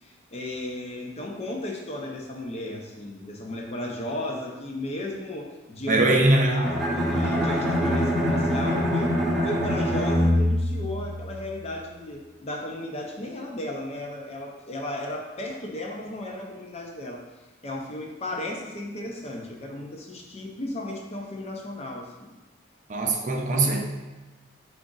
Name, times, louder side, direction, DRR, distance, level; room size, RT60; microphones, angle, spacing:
voice 1, 0.0-17.2 17.6-22.3, left 1 dB, 35° left, 0 dB, 0.6 m, -35 dB
voice 2, 5.9-6.6 22.9-23.8, right 2 dB, 40° right, 2 dB, 0.5 m, -21 dB
Bowed string instrument, 6.6-11.7, equal, ahead, 0.7 m, -24 dB
4.8 x 2.5 x 3.8 m, 1.2 s
head